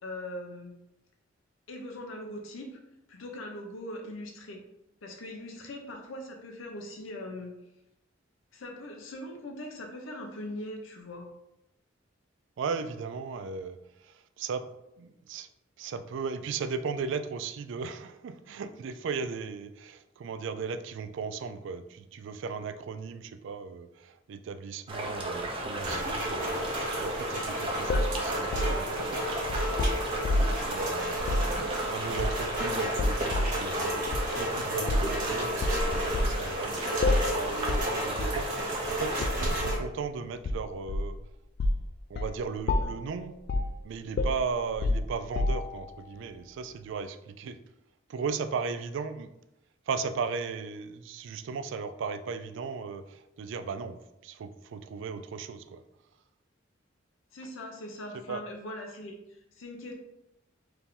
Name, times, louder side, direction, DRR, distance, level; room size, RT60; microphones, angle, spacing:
voice 1, 0.0-0.7 1.7-2.8 3.1-4.6 5.0-7.5 8.5-11.3 57.3-59.9, left 1 dB, 90° left, 2 dB, 0.7 m, -41 dB
voice 2, 12.6-14.7 15.0-15.5 15.8-26.7 27.0-30.0 30.3-34.0 34.4-41.2 42.1-43.4 43.8-47.6 48.1-49.3 49.9-55.8 57.4-57.5 58.1-58.4, right 5 dB, 65° right, 11 dB, 0.3 m, -36 dB
sound 1, 24.9-39.3, right 1 dB, 30° right, 0.6 m, -35 dB
Rain, 25.8-39.8, equal, 45° right, 1.4 m, -33 dB
sound 2, 27.9-30.7 31.2-31.5 32.2-32.6 33.0-33.6 34.1-34.3 34.9-35.2 35.6-36.4 37.0-37.4 37.7-37.9 38.2-38.4 39.2-39.8 40.4-41.2 41.6-41.9 42.2-42.4 42.7-43.1 43.5-43.8 44.2-45.8, left 2 dB, 55° left, 0.3 m, -28 dB
4.4 x 2.7 x 3.6 m, 0.87 s
head